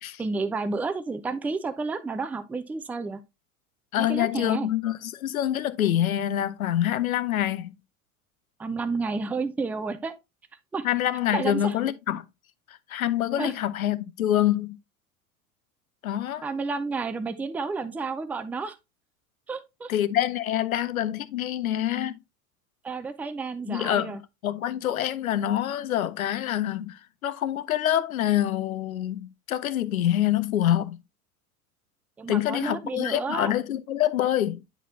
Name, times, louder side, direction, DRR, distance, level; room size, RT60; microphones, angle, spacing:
voice 1, 0.2-3.2 4.0-4.7 8.6-10.1 10.7-10.9 11.3-11.7 13.4-13.5 16.4-18.8 19.5-19.9 22.8-24.2 32.2-33.5, right 4 dB, 5° right, 0.4 m, -31 dB
voice 2, 3.9-7.7 10.8-12.3 12.9-14.8 16.0-16.5 19.9-22.2 23.7-24.2 24.4-31.0 32.3-34.6, left 12 dB, 70° left, 0.8 m, -26 dB
9.9 x 4.6 x 2.7 m
figure-of-eight pair, 80°, 44 cm